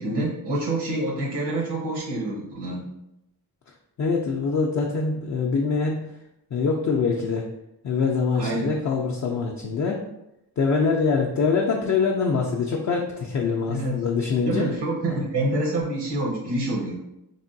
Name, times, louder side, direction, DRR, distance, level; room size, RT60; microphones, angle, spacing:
voice 1, 0.0-2.9 8.4-8.7 13.7-14.0 14.4-17.0, right 1 dB, 75° right, -2 dB, 1.0 m, -27 dB
voice 2, 4.0-6.0 6.5-7.4 7.8-10.0 10.6-14.6, left 5 dB, 45° left, -1 dB, 0.4 m, -24 dB
3.4 x 2.2 x 2.6 m, 0.87 s
cardioid pair, 75°, 41 cm